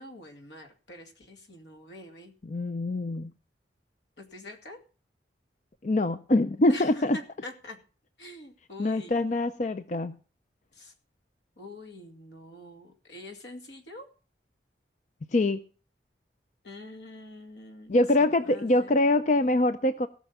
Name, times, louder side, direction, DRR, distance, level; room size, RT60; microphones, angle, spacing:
voice 1, 0.0-2.3 4.2-4.8 6.7-7.8 8.2-9.2 10.7-10.9 11.6-14.1 16.6-17.9 18.2-19.5, left 1 dB, 75° left, 4 dB, 2.3 m, -45 dB
voice 2, 2.4-3.3 5.8-7.2 8.8-10.2 15.3-15.6 17.9-20.1, left 2 dB, 40° left, 11 dB, 0.5 m, -24 dB
17.0 x 6.3 x 6.9 m, 0.38 s
head